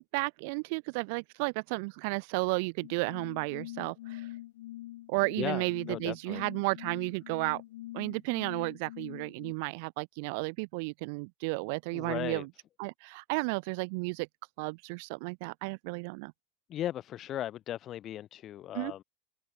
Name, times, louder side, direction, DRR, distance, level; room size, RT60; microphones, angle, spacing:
voice 1, 0.0-4.3 5.1-7.6 7.9-12.5 12.8-14.3 14.6-16.3 18.7-18.9, right 31 dB, 55° right, 0.8 m, -33 dB
sound 1, 2.8-9.5, left 16 dB, 75° left, 5.6 m, -45 dB
voice 2, 5.4-6.4 11.9-12.5 16.7-19.0, left 12 dB, 30° left, 3.1 m, -37 dB
open air
supercardioid pair, 155°, 0 cm